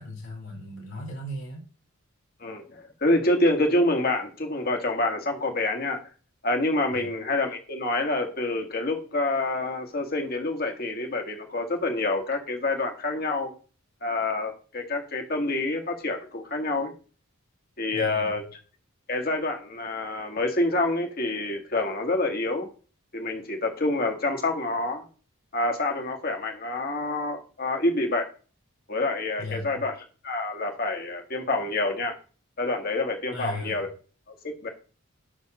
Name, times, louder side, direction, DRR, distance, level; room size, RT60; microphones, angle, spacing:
voice 1, 0.0-1.6 6.9-7.1 17.9-18.4 29.4-29.9 33.3-33.9, left 1 dB, 65° left, -1 dB, 4.2 m, -37 dB
voice 2, 2.4-6.0 6.4-13.5 14.0-16.9 17.8-18.4 19.1-22.7 23.1-25.0 25.5-28.3 28.9-29.9 30.2-32.1 32.6-33.9 34.4-34.7, left 2 dB, 45° left, 3 dB, 1.6 m, -27 dB
9.5 x 3.6 x 6.0 m, 0.37 s
head